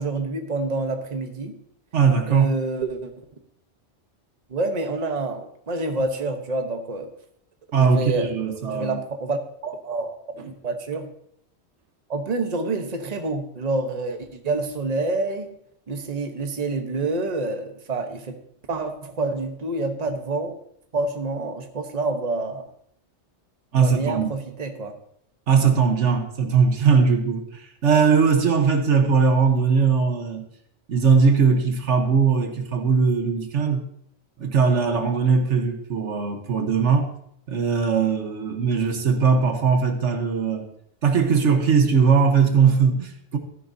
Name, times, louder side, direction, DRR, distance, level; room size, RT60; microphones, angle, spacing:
voice 1, 0.0-1.6 2.3-3.1 4.5-7.1 7.7-8.3 8.7-11.1 12.1-15.5 15.9-18.4 18.7-20.5 20.9-22.6 23.8-24.9, right 3 dB, 35° right, 1.1 m, -27 dB
voice 2, 1.9-2.5 7.7-9.0 10.4-10.5 23.7-24.3 25.5-30.4 30.9-33.8 34.4-37.1 37.5-40.7 41.0-43.4, right 5 dB, 80° right, 1.5 m, -20 dB
14.0 x 10.5 x 2.7 m
omnidirectional pair, 1.2 m